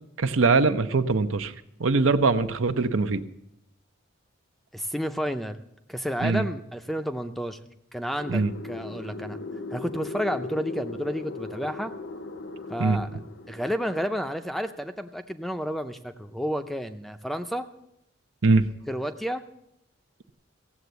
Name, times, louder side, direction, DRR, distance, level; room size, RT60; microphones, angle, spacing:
voice 1, 0.2-1.5 1.8-3.2 6.2-6.4 8.3-8.5 12.8-13.0 18.4-18.7, right 3 dB, 85° right, 10 dB, 0.8 m, -22 dB
voice 2, 4.7-5.6 5.9-7.6 7.9-9.4 9.7-11.9 12.7-13.1 13.5-17.7 18.9-19.4, equal, ahead, 8 dB, 0.5 m, -31 dB
sound 1, 8.2-14.4, left 3 dB, 60° left, 0.8 m, -38 dB
16.0 x 7.6 x 8.1 m, 0.80 s
head